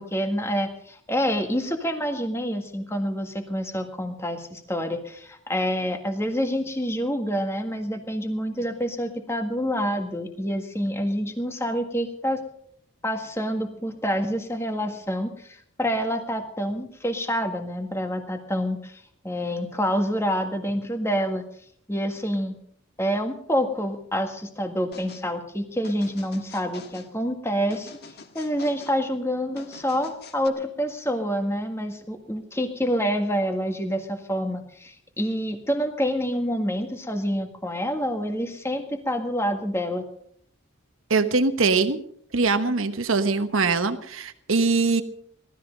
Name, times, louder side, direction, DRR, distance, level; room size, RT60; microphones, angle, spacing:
voice 1, 0.0-12.4 13.0-21.4 21.9-22.5 23.0-27.9 28.4-40.0, equal, 10° left, 5 dB, 1.7 m, -27 dB
sound 1, 24.9-25.3 25.8-27.1 27.7-29.0 29.6-30.5, left 4 dB, 50° left, 1.4 m, -45 dB
voice 2, 41.1-42.0 42.3-45.0, right 4 dB, 70° right, 9 dB, 1.2 m, -22 dB
18.0 x 13.0 x 5.3 m, 0.64 s
head